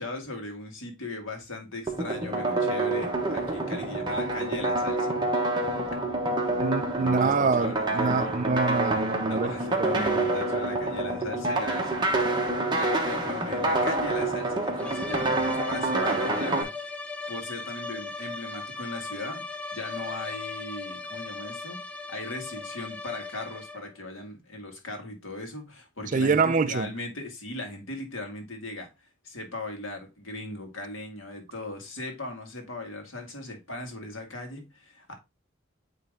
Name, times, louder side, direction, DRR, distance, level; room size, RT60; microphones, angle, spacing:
voice 1, 0.0-5.2 6.9-8.4 9.3-17.0 17.3-28.9 29.2-35.1, left 2 dB, 75° left, 2.0 m, -38 dB
sound 1, 1.9-16.6, right 2 dB, 20° right, 1.2 m, -27 dB
voice 2, 6.6-9.5 9.8-10.2 26.1-26.9, right 4 dB, 40° right, 0.4 m, -25 dB
sound 2, 14.8-24.0, left 3 dB, 5° left, 0.6 m, -38 dB
8.6 x 3.3 x 3.6 m
head